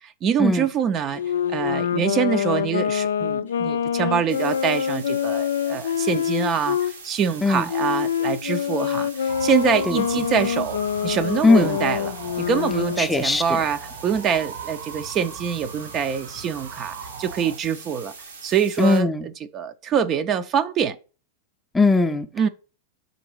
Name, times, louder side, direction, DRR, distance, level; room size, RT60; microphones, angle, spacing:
voice 1, 0.0-1.2 1.5-18.1 18.4-19.1 19.5-21.0 22.4-22.5, right 7 dB, 35° right, 0.5 m, -25 dB
Wind instrument woodwind instrument, 1.1-6.9 7.7-13.1, left 8 dB, 75° left, 0.3 m, -25 dB
sound 1, 4.3-19.0, right 4 dB, 90° right, 1.2 m, -43 dB
sound 2, 9.3-17.6, right 6 dB, 60° right, 0.9 m, -38 dB
voice 2, 13.0-13.4 18.8-19.3 21.7-22.3, left 3 dB, 10° left, 0.6 m, -19 dB
5.2 x 3.9 x 4.7 m
hypercardioid pair, 100°, 0 cm